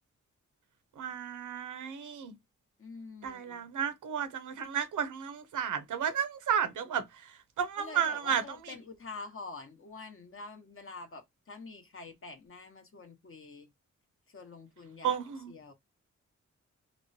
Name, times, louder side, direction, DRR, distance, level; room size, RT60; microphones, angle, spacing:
voice 1, 1.0-2.3 3.2-7.0 7.6-8.4 15.0-15.5, right 8 dB, 85° right, 0.6 m, -32 dB
voice 2, 2.8-3.6 7.8-13.7 14.3-15.2 15.5-15.7, left 4 dB, 45° left, 0.8 m, -46 dB
2.9 x 2.1 x 2.5 m
cardioid pair, 70°, 30 cm